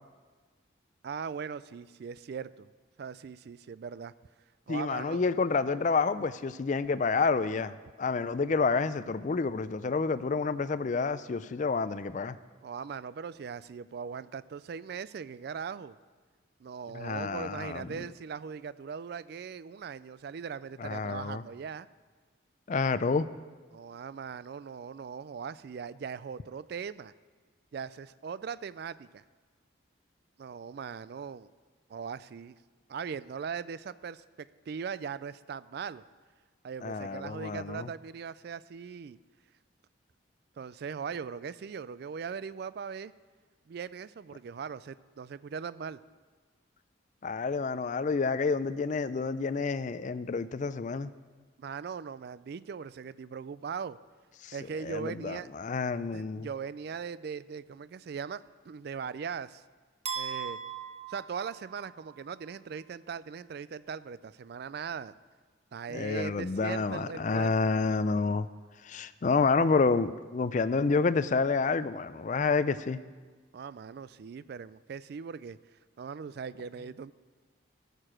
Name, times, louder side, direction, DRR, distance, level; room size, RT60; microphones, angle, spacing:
voice 1, 1.0-2.7 3.0-4.1 4.7-5.2 12.6-16.0 16.6-21.9 23.7-27.1 27.7-29.2 30.4-31.5 31.9-32.6 32.9-36.0 36.6-39.2 40.6-43.1 43.7-46.0 51.6-54.0 54.5-55.5 56.1-59.6 60.2-60.6 61.1-65.1 65.7-67.6 73.5-75.6 76.0-77.1, right 6 dB, 55° right, 17 dB, 0.3 m, -40 dB
voice 2, 4.7-7.7 8.0-12.3 16.9-18.0 20.8-21.4 22.7-23.3 36.8-37.9 47.2-51.1 54.4-54.5 54.8-56.5 65.9-68.5 68.8-73.0, left 4 dB, 40° left, 14 dB, 0.4 m, -29 dB
sound 1, 60.1-62.2, right 7 dB, 35° right, 0.9 m, -38 dB
14.5 x 6.7 x 6.2 m, 1.4 s
head